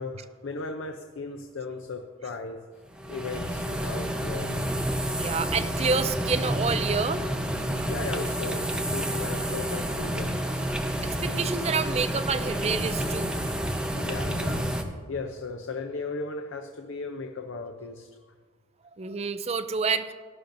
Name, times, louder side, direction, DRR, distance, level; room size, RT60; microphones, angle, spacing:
voice 1, 0.0-4.8 7.1-10.6 14.0-18.1, left 3 dB, 75° left, 6 dB, 0.6 m, -37 dB
sound 1, 2.9-14.8, right 1 dB, 5° right, 0.8 m, -29 dB
voice 2, 5.2-7.2 11.2-13.3 19.0-20.1, right 5 dB, 30° right, 10 dB, 0.5 m, -28 dB
17.0 x 11.5 x 2.6 m, 1.5 s
head